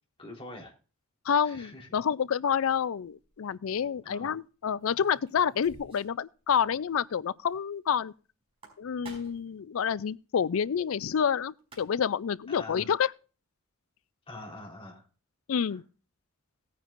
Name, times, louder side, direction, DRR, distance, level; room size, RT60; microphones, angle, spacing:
voice 1, 0.2-0.7 1.4-1.9 4.0-4.3 12.6-12.9 14.3-15.1 15.6-15.8, left 2 dB, 25° left, 3.7 m, -44 dB
voice 2, 1.3-8.1 8.8-13.1 15.5-15.8, left 7 dB, 70° left, 0.4 m, -28 dB
sound 1, 3.0-3.3 4.8-6.2 6.5-6.6 6.9-7.0 8.4-9.5 11.3-11.4 11.6-12.2, right 3 dB, 25° right, 5.0 m, -52 dB
18.0 x 9.5 x 2.5 m
head